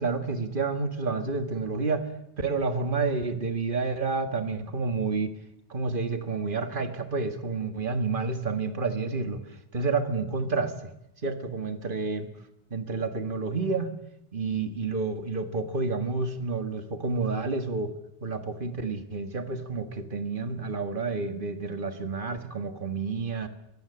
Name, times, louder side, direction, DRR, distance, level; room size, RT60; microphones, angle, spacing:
voice 1, 0.0-2.1 2.4-5.3 5.7-9.4 9.7-10.7 11.2-12.3 12.7-13.9 14.3-23.5, right 4 dB, 55° right, 7 dB, 2.0 m, -29 dB
23.5 x 15.0 x 9.8 m, 0.81 s
omnidirectional pair, 1.0 m